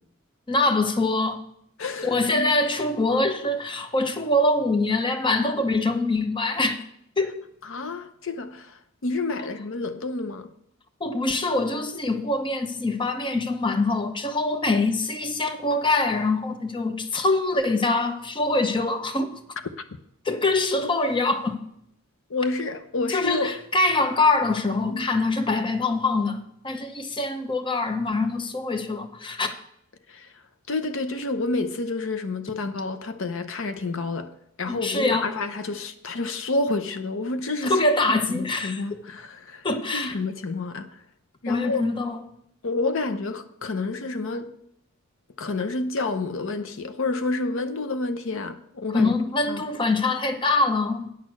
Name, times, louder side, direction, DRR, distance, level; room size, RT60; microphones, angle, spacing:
voice 1, 0.5-1.4 2.0-6.8 7.2-7.4 9.4-9.5 11.0-19.4 20.2-21.6 23.1-29.5 34.7-35.3 37.6-39.0 39.6-40.2 41.5-42.2 48.9-51.1, left 2 dB, 25° left, 0.7 m, -24 dB
voice 2, 1.8-2.5 7.6-10.5 20.8-21.0 22.3-23.5 24.8-25.1 30.1-30.3 30.7-37.8 38.1-39.7 39.9-41.0 41.4-41.9 42.6-44.5 45.4-49.1 49.5-49.7, left 3 dB, 65° left, 0.6 m, -29 dB
9.5 x 6.4 x 6.2 m
head